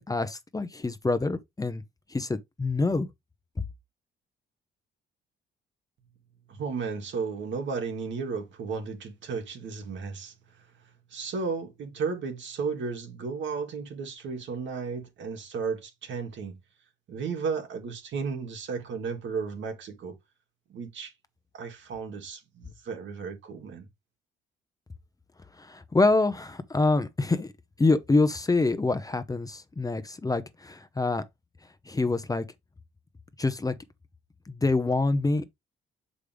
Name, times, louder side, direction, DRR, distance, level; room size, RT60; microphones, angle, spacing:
voice 1, 0.0-1.8 2.1-3.1 25.6-27.5 27.8-31.2 31.9-32.4 33.4-33.7 34.5-35.5, left 3 dB, 20° left, 0.8 m, -26 dB
voice 2, 6.5-10.7 11.1-16.6 17.1-20.2 20.7-21.1 21.5-23.9, right 5 dB, 70° right, 1.8 m, -34 dB
6.5 x 5.0 x 3.4 m
cardioid pair, 90°, 20 cm